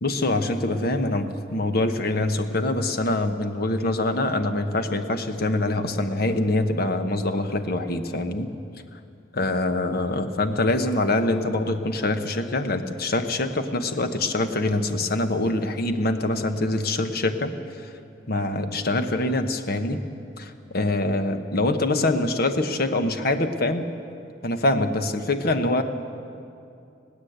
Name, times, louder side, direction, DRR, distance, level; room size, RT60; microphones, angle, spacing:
voice 1, 0.0-8.5 9.3-17.5 18.3-20.0 20.4-23.9 24.4-25.8, left 2 dB, 55° left, 8 dB, 1.2 m, -24 dB
20.5 x 17.0 x 8.1 m, 2.5 s
head